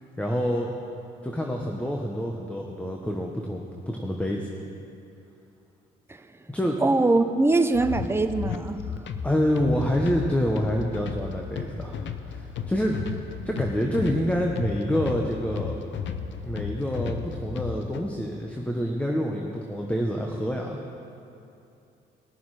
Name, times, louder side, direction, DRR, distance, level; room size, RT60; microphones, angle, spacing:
voice 1, 0.2-0.7 1.2-4.5 6.5-6.8 9.2-13.0 13.4-15.8 16.4-20.8, equal, 5° left, 0 dB, 1.0 m, -27 dB
voice 2, 6.8-8.8, right 2 dB, 10° right, 7 dB, 0.7 m, -22 dB
sound 1, 7.7-18.0, left 6 dB, 65° left, 0.7 m, -34 dB
19.5 x 7.0 x 4.8 m, 2.8 s
cardioid pair, 90°, 20 cm